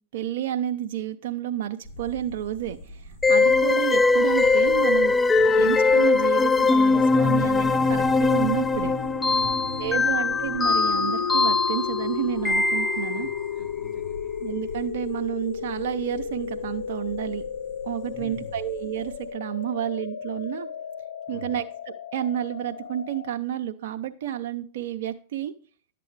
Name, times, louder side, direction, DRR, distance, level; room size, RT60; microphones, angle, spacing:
voice 1, 0.1-5.1 5.6-8.9 9.8-13.3 14.4-17.4 17.8-20.7 21.3-25.5, right 11 dB, 65° right, 6 dB, 0.6 m, -30 dB
sound 1, 1.8-19.3, equal, 60° left, 3.7 m, -45 dB
sound 2, 3.2-13.4, left 3 dB, 15° left, 0.3 m, -21 dB
sound 3, 4.4-23.3, left 8 dB, 80° left, 0.4 m, -35 dB
voice 2, 9.3-10.2 13.0-14.3 18.1-18.6 21.3-21.6, left 2 dB, 40° left, 2 dB, 2.5 m, -45 dB
11.0 x 7.6 x 3.2 m, 0.41 s
hypercardioid pair, 115°, 0 cm